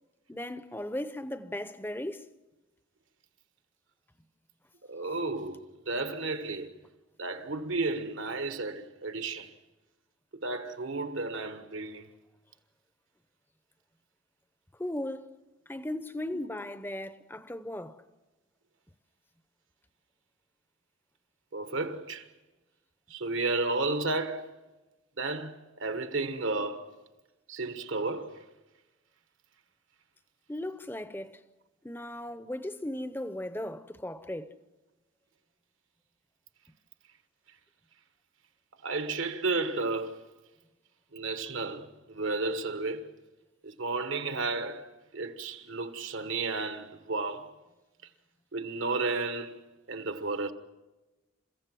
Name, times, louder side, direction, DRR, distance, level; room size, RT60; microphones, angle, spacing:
voice 1, 0.3-2.3 14.8-15.4 15.7-18.0 30.5-31.4 31.8-34.6, left 1 dB, 10° left, 0.7 m, -37 dB
voice 2, 4.9-6.7 7.2-9.5 10.4-12.1 21.5-22.3 23.1-24.5 25.2-26.9 27.5-28.4 38.8-40.3 41.1-43.1 43.6-47.5 48.5-49.6 49.9-50.5, right 3 dB, 70° right, 1.4 m, -33 dB
29.0 x 16.0 x 7.6 m
head